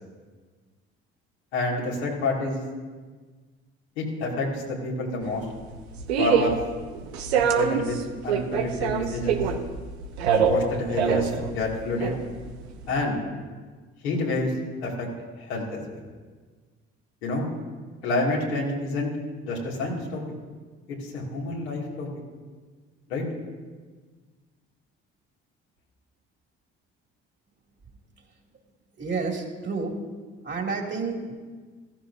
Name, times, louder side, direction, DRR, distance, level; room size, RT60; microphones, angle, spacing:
voice 1, 1.5-2.6 4.0-5.4 6.2-6.6 7.3-9.4 10.5-12.2 12.9-13.2 14.0-14.5 14.8-15.1 15.4-16.0 17.2-17.4 18.0-19.1 19.4-20.2 21.0-22.1 23.1-23.2, left 2 dB, 85° left, -4 dB, 2.5 m, -28 dB
sound 1, 5.2-12.9, right 6 dB, 85° right, 0.8 m, -25 dB
voice 2, 29.0-29.9 30.4-31.3, right 4 dB, 35° right, 1 dB, 2.6 m, -30 dB
14.5 x 14.5 x 2.7 m, 1.4 s
hypercardioid pair, 55°, 31 cm